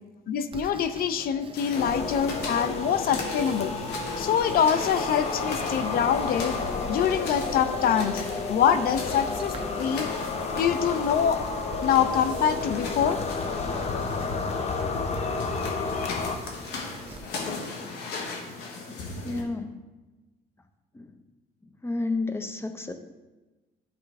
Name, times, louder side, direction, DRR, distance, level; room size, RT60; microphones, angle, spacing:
voice 1, 0.3-3.7 4.2-6.5 6.9-8.2 8.5-10.1 10.5-11.4 11.8-13.2, left 8 dB, 60° left, 12 dB, 0.5 m, -25 dB
Writing, 0.5-17.2, right 4 dB, 30° right, 0.7 m, -47 dB
Barefoot steps on tile, 1.5-19.4, left 3 dB, 85° left, 1.4 m, -39 dB
Forest jungle nature dark Atmo, 1.7-16.3, left 4 dB, 40° left, 0.8 m, -31 dB
voice 2, 18.9-19.8 20.9-21.1 21.8-23.0, left 3 dB, 15° left, 7 dB, 0.7 m, -31 dB
11.5 x 4.5 x 3.5 m, 1.1 s
cardioid pair, 110°, 17 cm